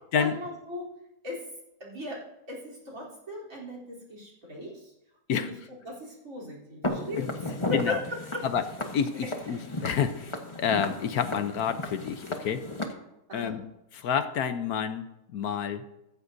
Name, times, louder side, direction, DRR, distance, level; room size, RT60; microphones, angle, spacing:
voice 1, 0.2-0.9 1.2-1.4 1.8-2.2 2.5-4.9 5.3-5.5 5.9-7.3 7.7-8.0 8.3-8.5 13.3-13.6, left 2 dB, 55° right, -1 dB, 3.9 m, -37 dB
Walk footsteps, 6.8-12.9, left 2 dB, 20° left, 1.1 m, -35 dB
voice 2, 8.9-12.6 13.3-13.6 13.9-15.0 15.3-15.8, left 7 dB, 70° left, 10 dB, 1.2 m, -29 dB
15.0 x 14.5 x 2.7 m, 0.87 s
omnidirectional pair, 1.7 m